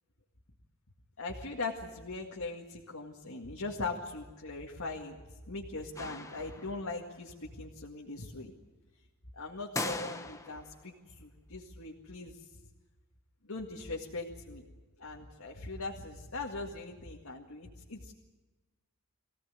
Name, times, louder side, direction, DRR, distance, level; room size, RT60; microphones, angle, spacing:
voice 1, 1.2-5.2 5.5-8.5 9.3-12.4 13.4-14.6 15.0-18.1, left 3 dB, 70° left, -1 dB, 2.0 m, -40 dB
sound 1, 6.0-6.9 9.8-10.8, left 2 dB, 15° left, 1.0 m, -39 dB
24.5 x 17.0 x 9.4 m, 1.3 s
head